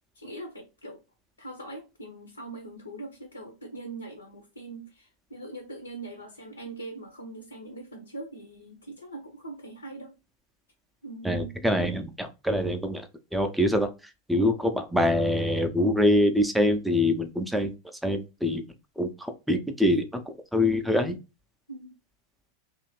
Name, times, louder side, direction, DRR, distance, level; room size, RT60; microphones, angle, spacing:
voice 1, 0.1-1.0 1.4-10.2 11.0-11.5 21.7-22.0, right 2 dB, 80° left, 0.5 m, -42 dB
voice 2, 11.2-13.1 13.3-13.9 14.3-17.7 18.0-18.6 19.0-20.0 20.5-21.2, left 1 dB, ahead, 0.4 m, -24 dB
2.7 x 2.4 x 3.0 m
figure-of-eight pair, 90°, 0 cm